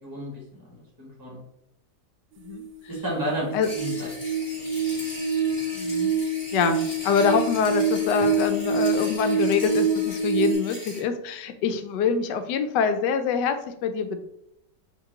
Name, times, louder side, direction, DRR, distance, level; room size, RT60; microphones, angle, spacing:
voice 1, 0.0-1.4 2.9-4.1, equal, 15° right, -3 dB, 0.9 m, -32 dB
sound 1, 2.5-10.6, right 4 dB, 80° right, 1.2 m, -26 dB
sound 2, 3.6-11.0, left 1 dB, 30° left, 1.4 m, -40 dB
voice 2, 5.7-6.1 6.5-14.2, left 6 dB, 80° left, 8 dB, 1.2 m, -25 dB
4.6 x 2.9 x 3.8 m, 0.78 s
omnidirectional pair, 1.9 m